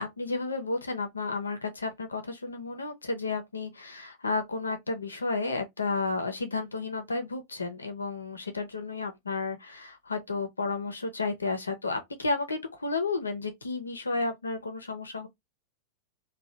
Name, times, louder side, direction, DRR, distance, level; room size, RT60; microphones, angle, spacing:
voice 1, 0.0-15.3, left 3 dB, 75° left, 0.6 m, -32 dB
2.8 x 2.2 x 3.2 m
figure-of-eight pair, 90°, 0 cm